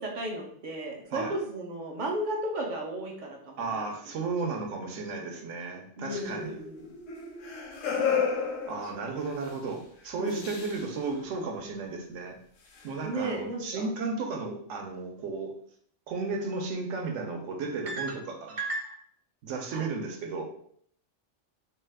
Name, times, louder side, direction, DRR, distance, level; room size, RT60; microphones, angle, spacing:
voice 1, 0.0-3.8 4.9-5.0 6.0-6.8 8.8-8.9 10.2-10.5 13.0-13.9 17.9-18.1 18.5-19.0 19.7-19.8, right 2 dB, 55° right, 0 dB, 0.5 m, -34 dB
voice 2, 3.6-6.6 8.7-12.4 12.8-15.5 16.1-18.5 19.4-20.5, right 3 dB, 75° right, 3 dB, 0.9 m, -34 dB
sound 1, 6.1-9.5 10.2-10.9 12.8-12.9, left 6 dB, 80° left, 1.0 m, -32 dB
2.6 x 2.3 x 3.3 m, 0.63 s
omnidirectional pair, 1.3 m